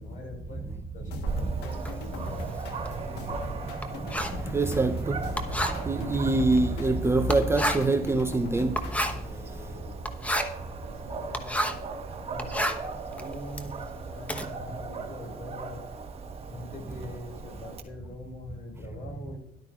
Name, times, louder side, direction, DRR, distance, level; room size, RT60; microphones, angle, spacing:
voice 1, 0.0-3.2 9.1-10.2 10.8-11.8 12.3-12.7 13.1-15.9 16.5-19.4, left 2 dB, 50° left, 4.4 m, -44 dB
sound 1, 1.1-9.3, left 4 dB, 85° left, 1.3 m, -42 dB
Dog, 1.3-17.8, right 4 dB, 35° right, 1.3 m, -39 dB
Writing, 1.7-11.9 12.3-14.4, equal, 10° left, 1.0 m, -32 dB
voice 2, 4.5-5.2 5.8-8.8, right 2 dB, 15° right, 0.6 m, -24 dB
13.0 x 11.5 x 2.4 m
cardioid pair, 110°, 17 cm